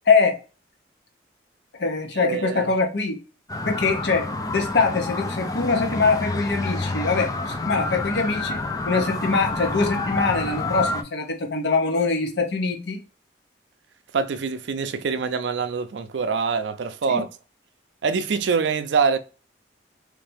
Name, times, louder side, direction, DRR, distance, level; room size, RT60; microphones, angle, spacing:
voice 1, 0.1-0.4 1.8-3.2 3.7-13.0 17.1-17.3, left 4 dB, 70° left, 0.8 m, -23 dB
voice 2, 2.2-2.7 14.1-17.3 18.0-19.2, right 5 dB, 75° right, 0.4 m, -24 dB
sound 1, 3.5-11.0, left 2 dB, 20° left, 0.4 m, -28 dB
3.2 x 2.7 x 3.3 m
head